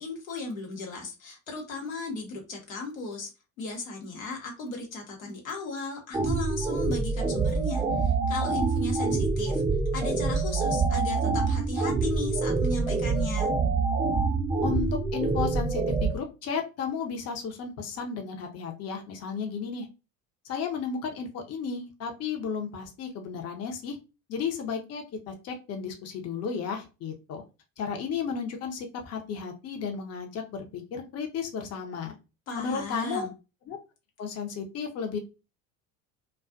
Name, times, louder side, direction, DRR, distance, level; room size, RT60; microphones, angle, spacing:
voice 1, 0.0-3.3 3.6-9.6 9.9-13.5 32.5-33.3, left 2 dB, 85° left, 1 dB, 0.9 m, -36 dB
sound 1, 6.1-16.1, right 4 dB, 15° right, 0.5 m, -26 dB
voice 2, 14.6-19.9 20.5-24.0 24.3-27.4 27.8-32.1 32.6-33.3 33.7-33.8 34.2-35.2, left 6 dB, 40° left, 3 dB, 0.7 m, -33 dB
2.4 x 2.3 x 2.4 m, 0.28 s
hypercardioid pair, 65°, 40 cm